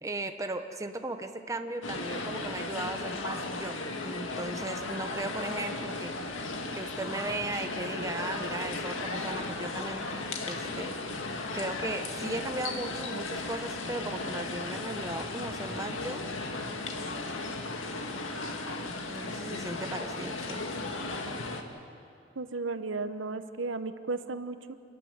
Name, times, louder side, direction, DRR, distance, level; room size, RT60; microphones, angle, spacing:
voice 1, 0.0-3.8 4.0-6.2 6.7-10.9 11.5-16.2 19.1-20.6, right 2 dB, 15° right, 6 dB, 1.0 m, -37 dB
sound 1, 1.8-21.6, left 2 dB, 85° left, 1.9 m, -36 dB
voice 2, 22.4-24.8, right 3 dB, 80° right, 10 dB, 1.0 m, -34 dB
27.0 x 14.5 x 9.9 m, 2.5 s
head